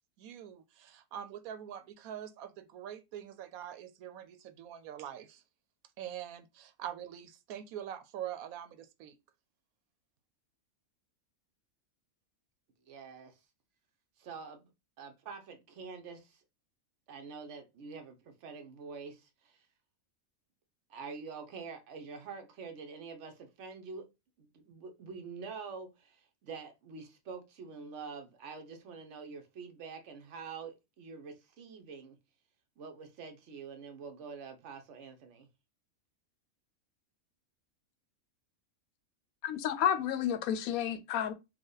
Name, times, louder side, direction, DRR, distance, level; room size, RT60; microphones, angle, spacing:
voice 1, 0.2-5.4 6.0-9.2, right 10 dB, 90° right, 1.1 m, -44 dB
voice 2, 12.9-13.4 14.2-14.7 15.0-16.4 17.1-19.6 20.9-24.0 24.4-32.2 32.8-35.5, right 5 dB, 60° right, 1.2 m, -46 dB
voice 3, 39.4-41.3, left 9 dB, 90° left, 1.1 m, -31 dB
4.7 x 2.2 x 3.9 m
omnidirectional pair, 1.4 m